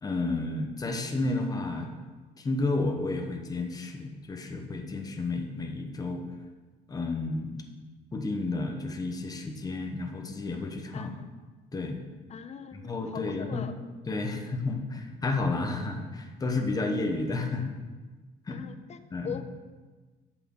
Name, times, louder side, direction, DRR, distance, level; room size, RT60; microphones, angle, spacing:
voice 1, 0.0-1.9 2.4-6.2 6.9-7.6 8.1-11.1 11.7-12.0 12.7-13.7 14.1-17.8 18.5-18.6 19.1-19.3, left 3 dB, 20° left, 4 dB, 1.0 m, -31 dB
voice 2, 10.9-11.3 12.3-13.8 18.5-19.4, left 7 dB, 40° left, 10 dB, 0.7 m, -41 dB
7.6 x 6.1 x 6.4 m, 1.3 s
cardioid pair, 110°, 17 cm